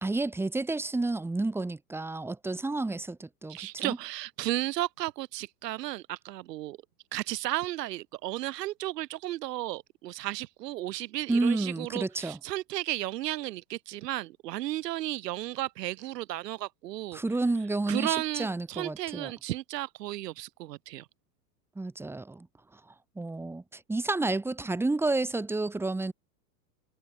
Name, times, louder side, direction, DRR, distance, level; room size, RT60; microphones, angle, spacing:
voice 1, 0.0-4.0 11.3-12.4 17.1-19.3 21.8-22.5 23.2-26.1, right 2 dB, 5° right, 0.9 m, -30 dB
voice 2, 3.5-6.8 7.1-17.2 17.9-21.1, right 16 dB, 70° right, 3.2 m, -34 dB
hypercardioid pair, 105°, 50 cm